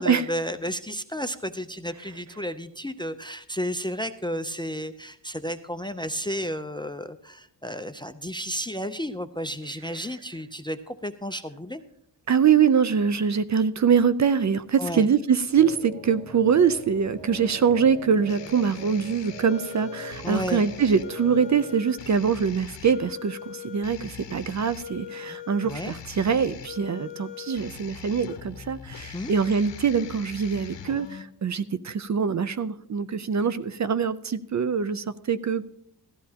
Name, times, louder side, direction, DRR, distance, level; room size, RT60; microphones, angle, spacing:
voice 1, 0.0-11.8 14.8-15.1 20.2-20.7 25.3-25.9 29.1-29.4, equal, 10° left, 11 dB, 0.4 m, -32 dB
voice 2, 12.3-35.6, right 6 dB, 40° right, 14 dB, 0.5 m, -24 dB
sound 1, 15.5-21.7, right 1 dB, 85° right, 2.0 m, -42 dB
sound 2, 16.7-31.2, left 9 dB, 75° left, 0.9 m, -42 dB
16.5 x 12.5 x 2.8 m, 0.72 s
cardioid pair, 80°, 43 cm